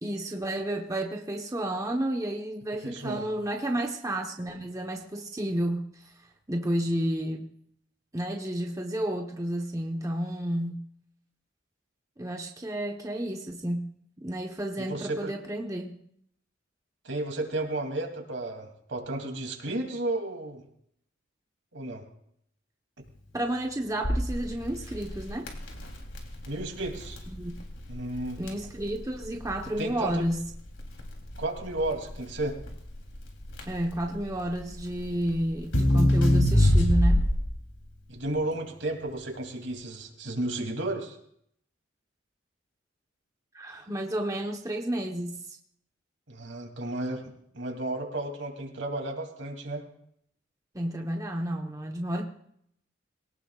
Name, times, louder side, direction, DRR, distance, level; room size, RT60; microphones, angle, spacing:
voice 1, 0.0-6.1 6.5-7.5 8.1-10.8 12.2-13.9 14.2-16.0 23.3-25.5 27.3-27.6 28.4-30.4 33.7-37.3 43.5-45.6 50.7-52.2, right 1 dB, 15° right, 1 dB, 1.1 m, -31 dB
voice 2, 2.8-3.3 14.8-15.3 17.0-20.6 21.7-22.0 26.5-27.2 27.9-28.4 29.8-30.2 31.4-32.6 38.1-41.2 46.3-49.8, right 2 dB, 75° right, 2 dB, 2.9 m, -33 dB
Crackle, 24.0-37.6, left 1 dB, 80° left, 3.3 m, -26 dB
23.0 x 18.0 x 2.5 m, 0.70 s
head